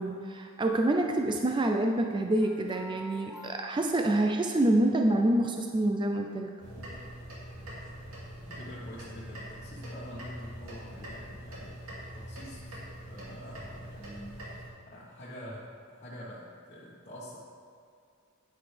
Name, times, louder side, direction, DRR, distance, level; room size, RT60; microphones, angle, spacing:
voice 1, 0.0-6.5, right 1 dB, 20° right, 3 dB, 0.5 m, -27 dB
sound 1, 2.4-4.9, equal, 5° right, 1.4 m, -48 dB
sound 2, 6.6-14.7, equal, 70° right, 2.6 m, -43 dB
voice 2, 8.4-11.8 12.1-12.8 13.1-14.4 14.9-17.4, equal, 35° left, -9 dB, 1.4 m, -46 dB
10.5 x 9.6 x 3.4 m, 2.4 s
head